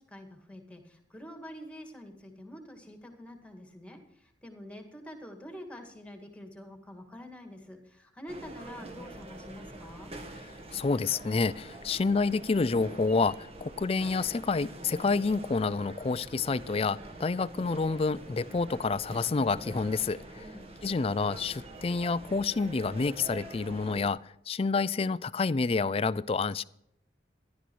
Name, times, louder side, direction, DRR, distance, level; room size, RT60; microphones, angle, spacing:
voice 1, 0.1-4.0 4.4-10.1 20.3-20.7, equal, 5° left, 5 dB, 2.0 m, -46 dB
sound 1, 8.3-24.1, right 1 dB, 35° right, 1.6 m, -45 dB
voice 2, 10.7-20.5 20.8-24.2 24.5-26.6, left 4 dB, 30° left, 19 dB, 0.4 m, -28 dB
14.5 x 11.5 x 4.6 m, 0.80 s
head